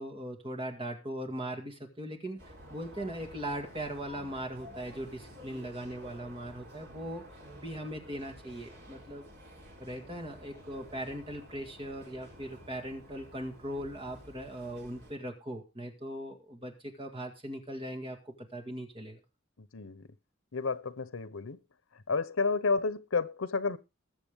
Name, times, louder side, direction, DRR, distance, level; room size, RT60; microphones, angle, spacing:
voice 1, 0.0-7.2 7.6-9.3 9.8-19.2, right 1 dB, 25° right, 2.0 m, -39 dB
sound 1, 2.4-15.1, equal, 50° right, 3.9 m, -51 dB
voice 2, 19.7-20.1 20.5-21.6 22.1-23.8, left 4 dB, 85° left, 0.9 m, -31 dB
21.0 x 7.2 x 3.6 m
head